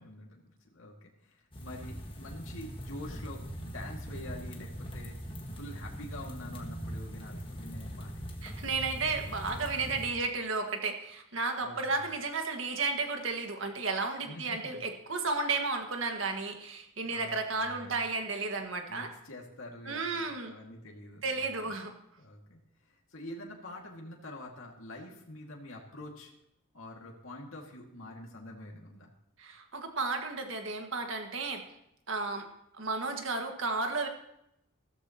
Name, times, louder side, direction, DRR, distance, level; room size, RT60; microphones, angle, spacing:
voice 1, 0.0-5.2 5.5-8.4 11.6-12.0 14.2-14.9 17.0-18.0 18.9-21.8 22.2-22.6 22.9-26.3 26.7-29.1, left 1 dB, 80° left, -1 dB, 2.1 m, -46 dB
sound 1, 1.5-10.1, equal, 25° left, 1.6 m, -41 dB
voice 2, 8.4-19.1 19.9-20.5 21.2-21.9 29.4-31.6 32.1-32.5 32.7-34.1, right 3 dB, 70° right, 4 dB, 1.7 m, -33 dB
15.0 x 13.5 x 2.9 m, 0.80 s
head